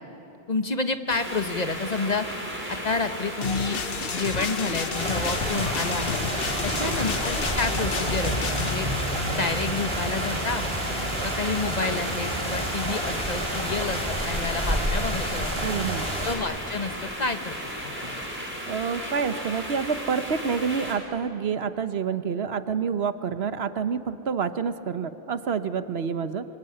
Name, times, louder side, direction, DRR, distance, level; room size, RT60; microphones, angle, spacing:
voice 1, 0.5-2.3 2.7-3.8 4.1-6.2 6.6-8.9 9.3-10.7 11.2-15.7 16.2-16.9 17.2-17.6 17.8-18.2, left 4 dB, 45° left, 8 dB, 1.3 m, -29 dB
sound 1, 1.1-20.9, equal, 10° right, 5.2 m, -35 dB
sound 2, 3.4-8.7, left 6 dB, 65° left, 1.1 m, -31 dB
sound 3, 4.9-16.4, right 1 dB, 25° right, 4.2 m, -29 dB
voice 2, 15.6-16.1 18.7-26.4, right 6 dB, 80° right, 11 dB, 1.2 m, -28 dB
25.0 x 24.5 x 9.8 m, 2.9 s
omnidirectional pair, 1.0 m